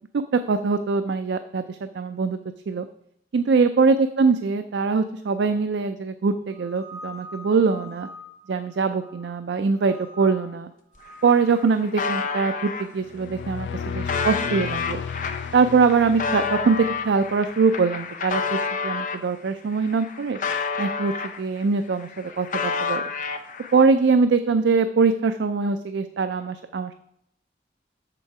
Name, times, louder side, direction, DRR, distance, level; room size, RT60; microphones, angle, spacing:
voice 1, 0.1-2.4 2.7-2.9 3.3-8.1 8.5-10.7 11.2-15.0 15.5-20.4 20.8-23.0 23.7-26.9, right 4 dB, 75° right, 9 dB, 0.4 m, -22 dB
sound 1, 6.5-9.4 9.8-10.5 10.9-12.4, left 1 dB, 20° left, 1.3 m, -44 dB
sound 2, 10.9-11.0 11.3-12.8 13.5-19.2 19.7-21.6 21.9-23.8, left 5 dB, 45° left, 0.6 m, -29 dB
sound 3, 13.0-17.4, left 6 dB, 90° left, 0.3 m, -34 dB
6.9 x 6.6 x 4.7 m, 0.76 s
head